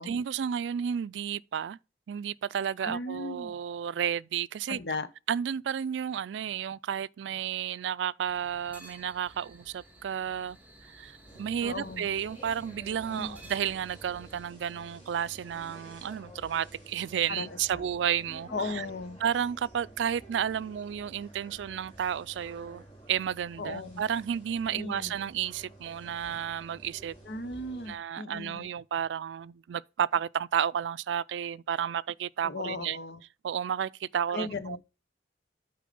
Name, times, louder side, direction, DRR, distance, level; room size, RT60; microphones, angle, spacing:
voice 1, 0.0-1.8 2.1-4.8 5.3-10.6 10.9-18.9 19.2-27.1 27.9-33.0 33.4-34.8, right 8 dB, 85° right, 0.3 m, -32 dB
voice 2, 2.8-3.5 4.7-5.1 11.6-12.1 13.1-13.4 17.3-17.5 17.7-17.9 18.5-19.2 23.6-24.0 24.7-25.1 27.2-28.7 32.4-33.2 34.3-34.8, left 2 dB, 65° left, 1.0 m, -36 dB
sound 1, 8.2-14.4, right 1 dB, 10° right, 1.8 m, -53 dB
sound 2, 11.3-28.0, right 1 dB, 25° left, 4.0 m, -51 dB
8.4 x 4.7 x 5.2 m
head